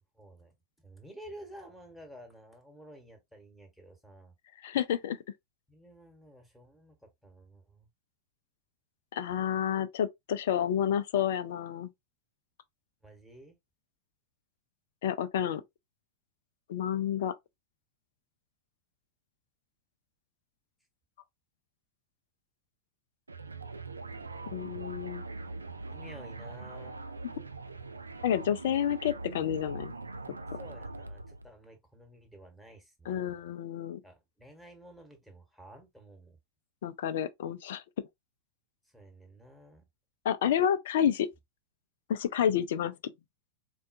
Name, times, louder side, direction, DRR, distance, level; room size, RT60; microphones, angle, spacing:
voice 1, 0.1-0.5 0.8-4.3 5.7-7.9 13.0-13.6 24.2-25.0 25.9-27.0 30.5-33.4 34.0-36.4 38.8-39.8, right 1 dB, ahead, 1.2 m, -52 dB
voice 2, 4.6-5.2 9.1-11.9 15.0-15.6 16.7-17.3 24.5-25.2 28.2-29.9 33.1-34.0 36.8-37.8 40.2-41.3 42.1-42.9, left 9 dB, 55° left, 0.4 m, -29 dB
sound 1, 23.3-31.5, right 3 dB, 80° right, 0.3 m, -42 dB
4.2 x 2.3 x 2.5 m
figure-of-eight pair, 90°, 0 cm